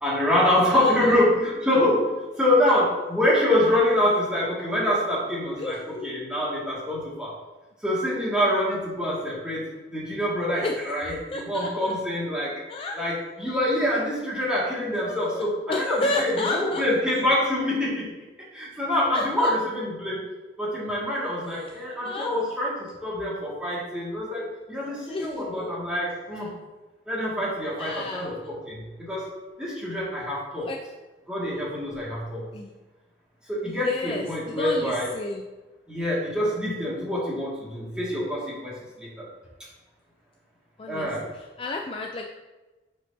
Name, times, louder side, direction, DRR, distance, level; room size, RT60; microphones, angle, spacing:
voice 1, 0.0-7.3 7.8-11.2 11.4-12.5 12.9-18.1 18.5-20.2 20.6-26.5 27.1-29.2 29.6-30.7 31.3-32.4 33.5-35.1 35.9-39.1 40.9-41.2, left 1 dB, 5° right, -7 dB, 1.9 m, -25 dB
voice 2, 5.6-6.1 10.5-10.8 11.3-11.7 12.7-13.2 15.0-17.2 19.1-19.5 21.6-22.5 24.8-25.7 27.8-28.3 30.6-30.8 32.5-32.7 33.7-35.4 40.8-42.3, left 2 dB, 30° left, 1 dB, 0.4 m, -32 dB
9.3 x 4.4 x 2.7 m, 1.1 s
head